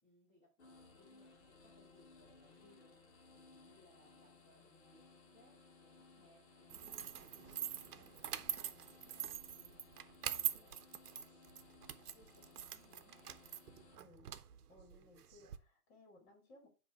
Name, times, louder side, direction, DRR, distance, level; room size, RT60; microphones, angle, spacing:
voice 1, 0.0-3.0 3.3-7.6 7.9-9.8 10.1-11.7 12.1-13.3, left 1 dB, 15° left, -9 dB, 3.3 m, -69 dB
sound 1, 0.6-14.0, left 3 dB, 45° left, 1.9 m, -62 dB
sound 2, 6.7-15.6, right 10 dB, 80° right, 0.9 m, -44 dB
voice 2, 13.9-14.3 14.7-16.7, left 2 dB, 30° left, 2 dB, 2.6 m, -62 dB
8.3 x 3.3 x 4.6 m, 0.34 s
hypercardioid pair, 160°, 45 cm